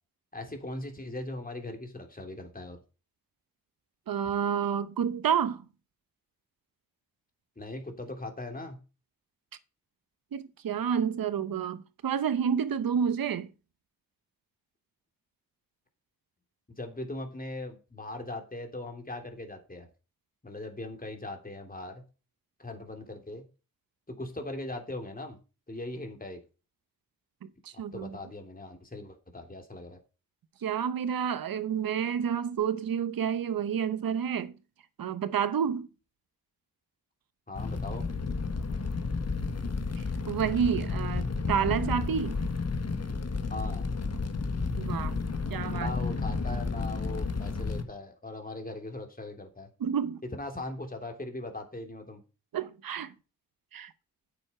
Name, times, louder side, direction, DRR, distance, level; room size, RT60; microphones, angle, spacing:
voice 1, 0.3-2.8 7.6-8.8 16.8-19.9 20.4-22.0 22.6-23.4 24.1-25.4 25.7-26.4 27.9-30.0 37.5-38.1 43.5-43.9 45.7-49.7 50.3-52.2, left 2 dB, 25° left, 3.1 m, -39 dB
voice 2, 4.1-5.6 10.3-13.5 27.4-28.2 30.6-34.5 35.0-35.9 40.0-42.4 44.8-45.2 45.5-45.9 49.8-50.2 52.5-53.1 53.7-53.9, right 8 dB, 85° right, 0.9 m, -29 dB
Fire, 37.5-47.8, left 4 dB, 50° left, 1.5 m, -32 dB
9.5 x 7.2 x 4.4 m
cardioid pair, 60°, 34 cm